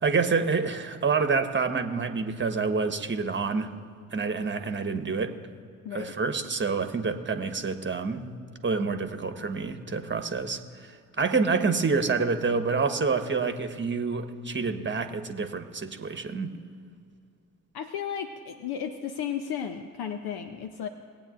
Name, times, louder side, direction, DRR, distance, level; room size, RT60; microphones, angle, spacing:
voice 1, 0.0-3.7 4.1-5.3 5.9-8.3 8.6-16.5, right 4 dB, 25° right, 7 dB, 1.3 m, -27 dB
voice 2, 17.7-20.9, left 8 dB, 60° left, 7 dB, 0.9 m, -34 dB
20.5 x 8.9 x 2.6 m, 2.3 s
hypercardioid pair, 50°, 42 cm